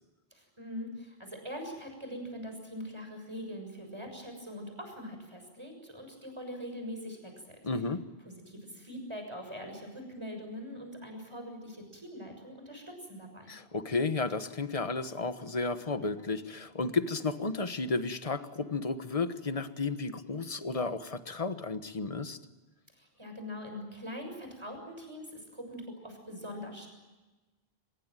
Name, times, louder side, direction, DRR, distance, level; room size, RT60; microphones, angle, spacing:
voice 1, 0.3-7.6 8.3-13.5 22.9-26.9, equal, 25° right, 4 dB, 6.8 m, -43 dB
voice 2, 7.6-8.0 13.5-22.4, left 3 dB, 35° left, 10 dB, 1.4 m, -33 dB
25.0 x 22.0 x 9.1 m, 1.2 s
omnidirectional pair, 1.1 m